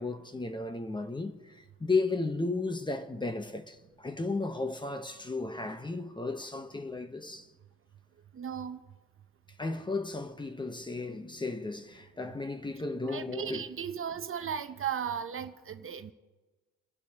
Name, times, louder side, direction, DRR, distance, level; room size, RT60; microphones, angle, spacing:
voice 1, 0.0-7.5 9.6-13.6, left 3 dB, 15° left, 1.0 m, -34 dB
voice 2, 8.4-8.8 13.0-16.1, right 8 dB, 45° right, 0.8 m, -36 dB
28.5 x 11.0 x 2.9 m
cardioid pair, 90°, 30 cm